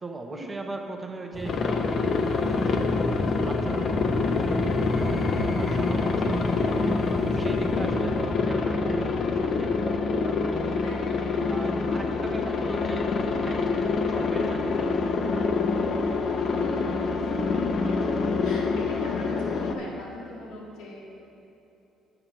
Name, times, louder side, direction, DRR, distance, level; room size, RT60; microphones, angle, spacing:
voice 1, 0.0-5.2 5.5-10.9 11.5-13.7 14.0-15.1 19.2-19.4, right 2 dB, 25° right, 2 dB, 0.8 m, -39 dB
sound 1, 1.3-10.4, left 1 dB, 10° left, 1.0 m, -31 dB
Aircraft, 1.5-19.7, left 4 dB, 55° left, 0.6 m, -26 dB
voice 2, 7.2-7.6 10.8-11.6 16.6-18.0 18.4-21.0, left 1 dB, 80° left, -5 dB, 2.0 m, -40 dB
8.8 x 5.7 x 5.5 m, 2.9 s
supercardioid pair, 65°, 0 cm